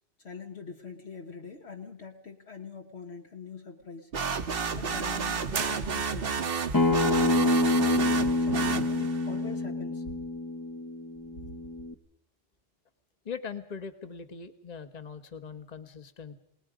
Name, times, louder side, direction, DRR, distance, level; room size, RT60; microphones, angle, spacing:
voice 1, 0.2-4.1 4.7-6.4 6.9-8.0 8.4-10.0, left 5 dB, 65° left, 2 dB, 1.6 m, -43 dB
sound 1, 4.1-9.3, right 5 dB, 55° right, 1.2 m, -31 dB
sound 2, 5.5-6.5, right 6 dB, 85° right, 1.5 m, -37 dB
Acoustic guitar, 6.7-11.9, left 2 dB, 20° left, 0.9 m, -27 dB
voice 2, 13.2-16.3, left 6 dB, 35° left, 9 dB, 1.4 m, -41 dB
29.5 x 19.0 x 5.1 m, 0.71 s
omnidirectional pair, 1.2 m